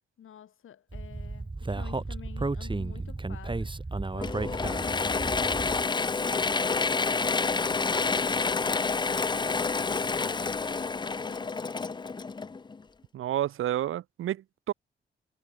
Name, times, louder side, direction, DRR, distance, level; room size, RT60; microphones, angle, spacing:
voice 1, 0.2-3.7 4.1-6.4 6.8-11.6, left 9 dB, 75° left, 3.9 m, -50 dB
Speech, 0.9-5.8, right 3 dB, 25° right, 2.6 m, -33 dB
Mechanisms / Drill, 4.2-12.8, left 4 dB, 20° left, 0.5 m, -28 dB
voice 2, 13.1-14.7, right 12 dB, 75° right, 0.7 m, -30 dB
cardioid pair, 65°, 21 cm